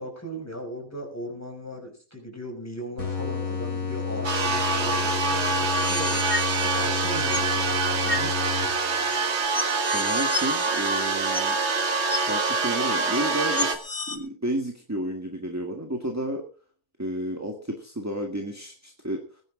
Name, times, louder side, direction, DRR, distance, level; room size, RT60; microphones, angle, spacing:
voice 1, 0.0-6.2 6.6-8.3, right 1 dB, 10° left, 2 dB, 5.7 m, -37 dB
sound 1, 3.0-9.1, left 5 dB, 70° left, 5.1 m, -31 dB
sound 2, 4.2-13.8, right 4 dB, 50° right, 1.9 m, -25 dB
sound 3, 5.7-7.5 8.1-8.3 9.1-9.2 9.5-11.7 12.1-12.2 13.1-13.2 13.6-14.2, left 3 dB, 35° left, 2.0 m, -33 dB
voice 2, 9.9-11.6 12.3-16.4 17.0-19.4, right 1 dB, 10° right, 3 dB, 1.7 m, -31 dB
20.5 x 10.5 x 3.8 m, 0.39 s
omnidirectional pair, 1.6 m